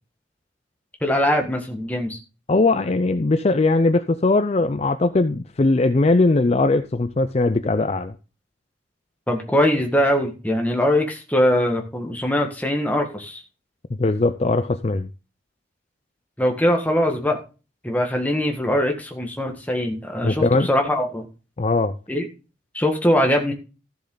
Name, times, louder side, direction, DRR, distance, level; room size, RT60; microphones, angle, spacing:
voice 1, 1.0-2.2 9.3-13.4 16.4-17.4 17.8-21.3 22.1-22.3 22.7-23.5, left 1 dB, 10° left, 1.7 m, -22 dB
voice 2, 2.5-8.1 14.0-15.1 20.2-20.7 21.6-21.9, left 2 dB, 30° left, 0.4 m, -20 dB
14.0 x 6.9 x 3.9 m
head